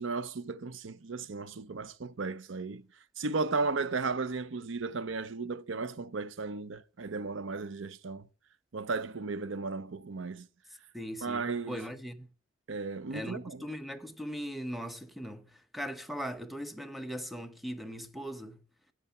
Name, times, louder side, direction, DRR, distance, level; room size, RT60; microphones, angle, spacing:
voice 1, 0.0-2.8 3.2-8.3 8.7-10.5 11.2-11.8 12.7-13.6, right 4 dB, 65° right, 0.6 m, -35 dB
voice 2, 10.9-12.3 13.1-18.6, equal, ahead, 0.8 m, -39 dB
11.0 x 7.9 x 5.6 m
head